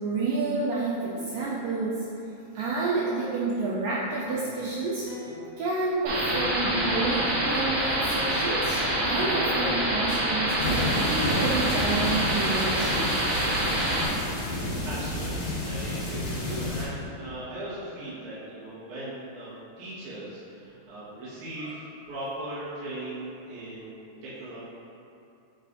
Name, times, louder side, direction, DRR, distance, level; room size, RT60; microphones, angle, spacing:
voice 1, 0.0-2.1 2.6-5.1 5.6-13.4 21.6-21.7, right 3 dB, 90° right, -6 dB, 1.9 m, -29 dB
sound 1, 4.0-5.9 6.3-12.1, left 3 dB, 75° left, 2.4 m, -40 dB
sound 2, 6.1-14.1, right 1 dB, 75° right, 3.1 m, -26 dB
sound 3, 10.6-16.8, left 1 dB, 55° left, 2.3 m, -31 dB
voice 2, 14.7-23.9 24.2-24.6, right 1 dB, 55° right, -12 dB, 2.6 m, -39 dB
8.0 x 5.4 x 2.7 m, 2.7 s
omnidirectional pair, 4.7 m